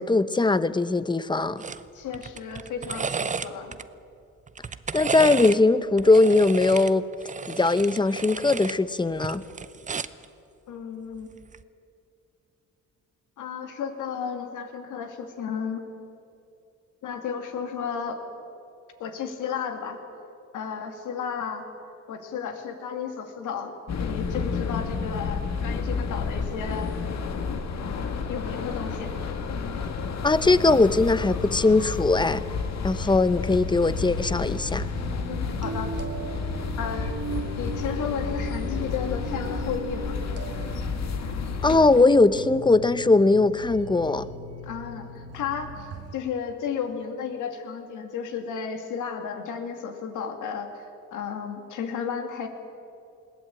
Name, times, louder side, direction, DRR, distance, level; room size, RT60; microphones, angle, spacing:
voice 1, 0.0-1.6 4.9-7.0 7.5-9.4 30.2-32.4 32.8-34.9 41.6-44.3, left 3 dB, 15° left, 15 dB, 0.8 m, -20 dB
sound 1, 1.6-1.8 2.1-3.8 4.5-5.6 6.0-8.8 9.1-10.2 11.4-11.6, right 5 dB, 25° right, 0.7 m, -33 dB
voice 2, 1.9-3.8 10.7-11.3 13.4-15.8 17.0-18.2 19.0-20.0 20.5-21.7 22.1-23.7 24.0-26.9 28.3-29.1 35.3-35.9 36.8-37.1 37.6-40.2 44.6-45.9 46.1-52.5, left 7 dB, 80° left, 5 dB, 2.5 m, -33 dB
sound 2, 23.9-42.0, left 5 dB, 60° left, 1.9 m, -31 dB
sound 3, 34.1-46.1, right 4 dB, 55° right, 1.5 m, -38 dB
21.0 x 17.0 x 8.9 m, 2.6 s
cardioid pair, 90°, 30 cm